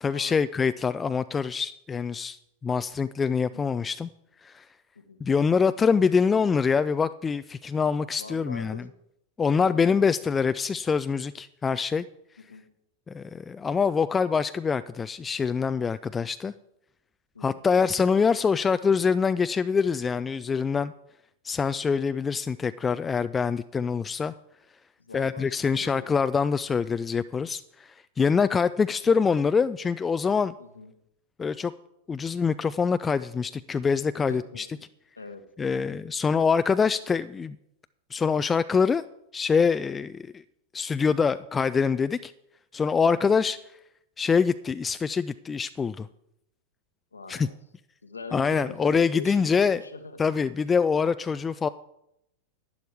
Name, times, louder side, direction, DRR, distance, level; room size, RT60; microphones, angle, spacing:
voice 1, 0.0-4.1 4.4-4.7 5.2-8.8 9.4-12.0 13.1-16.5 17.4-20.9 21.4-24.3 25.1-30.5 31.4-31.7 32.1-34.7 35.6-37.6 38.1-39.0 39.3-40.3 40.7-42.3 42.7-43.6 44.2-46.1 47.3-47.5 48.3-49.8 50.2-51.7, left 5 dB, 15° left, 13 dB, 0.3 m, -25 dB
voice 2, 3.5-3.8 4.9-5.2 8.2-8.9 9.7-10.1 12.5-12.7 17.3-17.6 25.0-26.1 30.6-30.9 34.3-34.8 35.2-35.5 47.1-47.6 48.0-50.2, left 3 dB, 80° left, 9 dB, 1.2 m, -42 dB
11.0 x 10.5 x 4.6 m, 0.79 s
figure-of-eight pair, 90°, 0 cm